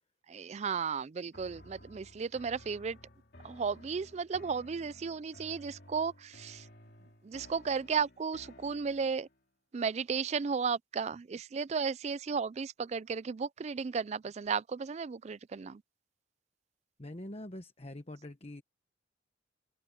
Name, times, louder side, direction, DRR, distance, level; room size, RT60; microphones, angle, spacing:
voice 1, 0.3-3.0 3.4-6.7 7.2-9.3 9.7-15.8, right 5 dB, 35° right, 0.3 m, -34 dB
sound 1, 1.3-9.4, left 1 dB, 55° left, 3.2 m, -55 dB
voice 2, 17.0-18.6, left 1 dB, 30° left, 1.2 m, -44 dB
head